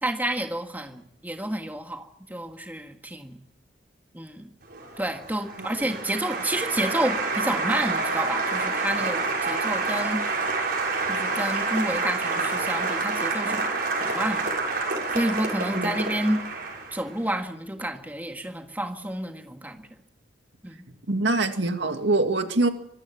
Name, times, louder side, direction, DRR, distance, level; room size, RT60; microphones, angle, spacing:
voice 1, 0.0-3.4 4.1-4.5 5.0-10.2 11.1-13.7 14.0-14.5 15.1-16.4 16.9-19.8 20.6-20.9, right 1 dB, 10° right, 4 dB, 1.7 m, -29 dB
Applause, 4.7-17.2, right 3 dB, 55° right, 6.7 m, -28 dB
voice 2, 21.1-22.7, right 2 dB, 70° right, 6 dB, 2.2 m, -24 dB
25.0 x 14.0 x 7.4 m, 0.75 s
head